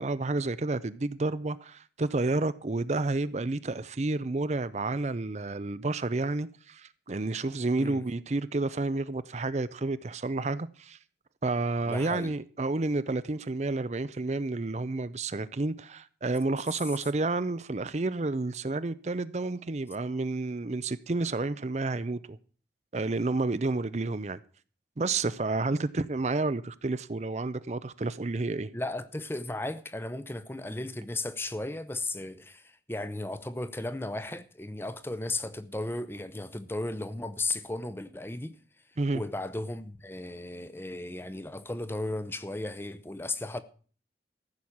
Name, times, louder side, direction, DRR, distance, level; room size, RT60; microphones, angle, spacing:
voice 1, 0.0-11.0 11.4-22.4 22.9-24.4 25.0-28.7 39.0-39.2, right 2 dB, 40° right, 0.5 m, -30 dB
voice 2, 11.9-12.3 28.7-38.6 39.1-43.6, left 2 dB, 15° left, 0.8 m, -35 dB
14.5 x 6.3 x 8.6 m
head